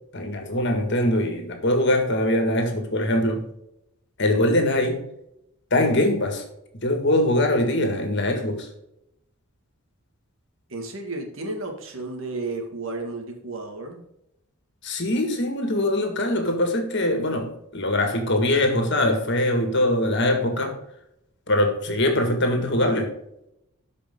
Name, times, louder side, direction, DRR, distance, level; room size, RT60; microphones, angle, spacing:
voice 1, 0.1-3.5 4.2-5.1 5.7-6.4 6.8-8.7 14.8-20.8 21.5-23.1, left 1 dB, 50° left, 5 dB, 1.9 m, -22 dB
voice 2, 10.7-14.0, right 2 dB, 60° right, 2 dB, 2.0 m, -33 dB
13.0 x 5.3 x 3.8 m, 0.81 s
head